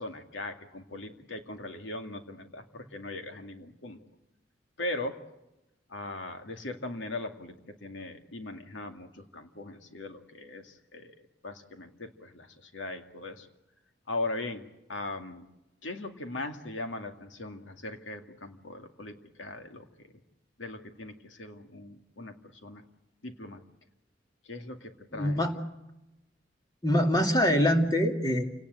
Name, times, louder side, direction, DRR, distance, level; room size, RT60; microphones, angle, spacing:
voice 1, 0.0-4.0 4.8-5.2 5.9-13.5 14.1-15.5 15.8-20.1 20.6-22.8 23.2-23.6 24.4-25.4, left 2 dB, 90° left, 6 dB, 2.3 m, -39 dB
voice 2, 25.1-25.5 26.8-28.4, equal, 20° left, 3 dB, 2.5 m, -24 dB
28.5 x 18.5 x 8.1 m, 0.94 s
head